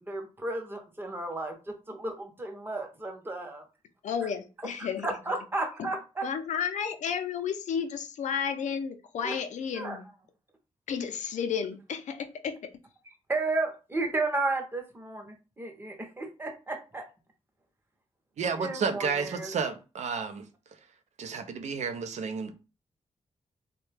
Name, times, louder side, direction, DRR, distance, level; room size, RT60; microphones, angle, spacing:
voice 1, 0.0-3.6 5.0-6.2 9.2-9.3 9.8-10.0 13.3-17.0 18.6-19.5, right 2 dB, 20° right, 0.7 m, -33 dB
voice 2, 4.0-5.2 5.8-6.0 6.2-10.1 10.9-12.7, left 7 dB, 85° left, 0.4 m, -32 dB
voice 3, 18.4-20.5 21.2-22.5, right 5 dB, 70° right, 0.5 m, -31 dB
3.2 x 2.2 x 3.2 m
wide cardioid pair, 160°, 12 cm